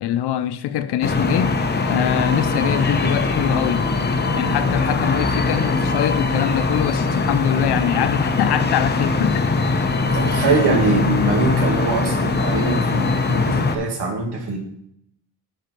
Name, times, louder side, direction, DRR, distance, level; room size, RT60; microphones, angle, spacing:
voice 1, 0.0-1.5 1.9-3.8 4.3-9.5, left 11 dB, 85° left, 0.6 m, -23 dB
sound 1, 1.0-13.8, left 3 dB, 25° left, 0.8 m, -21 dB
voice 2, 10.0-14.6, right 3 dB, 90° right, 2.2 m, -22 dB
10.0 x 4.9 x 4.5 m
cardioid pair, 135°, 38 cm